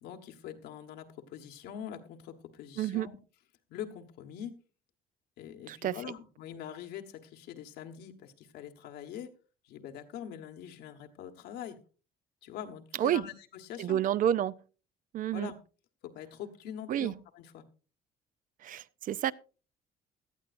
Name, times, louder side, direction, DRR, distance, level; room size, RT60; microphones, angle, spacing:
voice 1, 0.0-3.2 3.7-4.5 5.4-9.3 9.6-11.8 12.4-14.0 15.3-15.5 16.0-17.6, left 9 dB, 85° left, 1.4 m, -44 dB
voice 2, 2.8-3.1 5.7-6.0 13.0-13.2 13.8-14.5 15.1-15.5 16.9-17.1 18.6-19.3, right 11 dB, 55° right, 0.5 m, -29 dB
17.5 x 12.0 x 2.5 m
cardioid pair, 110°, 17 cm